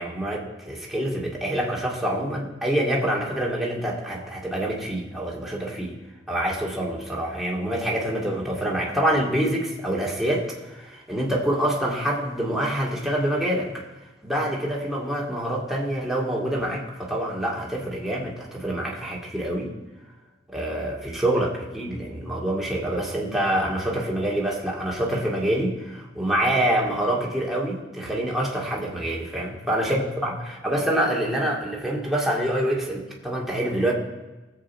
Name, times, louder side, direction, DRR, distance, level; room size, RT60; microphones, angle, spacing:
voice 1, 0.0-5.9 6.3-13.9 14.2-19.7 20.5-33.9, right 1 dB, ahead, -4 dB, 2.1 m, -26 dB
19.0 x 7.9 x 4.3 m, 1.1 s
head